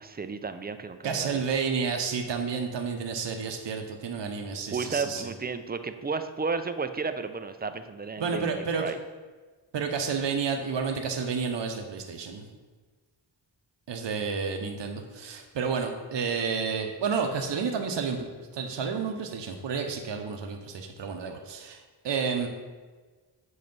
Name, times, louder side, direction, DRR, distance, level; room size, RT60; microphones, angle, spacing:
voice 1, 0.0-1.4 4.7-9.0, right 4 dB, 25° right, 10 dB, 0.4 m, -33 dB
voice 2, 1.0-5.3 8.2-8.8 9.7-12.4 13.9-18.3 18.5-21.8 22.0-22.5, right 5 dB, 70° right, 4 dB, 0.8 m, -30 dB
7.8 x 3.2 x 5.3 m, 1.4 s
cardioid pair, 70°, 45 cm